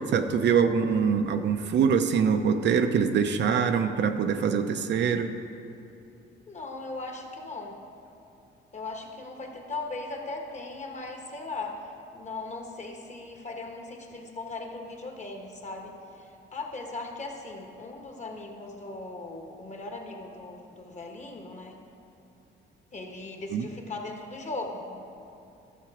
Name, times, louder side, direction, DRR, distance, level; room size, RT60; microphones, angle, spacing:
voice 1, 0.0-5.3 23.5-23.7, right 6 dB, 60° right, 7 dB, 0.7 m, -24 dB
voice 2, 6.5-7.8 8.7-16.3 16.5-21.8 22.9-25.0, left 3 dB, 35° left, 2 dB, 1.5 m, -38 dB
12.5 x 6.8 x 5.0 m, 2.7 s
cardioid pair, 90°, 20 cm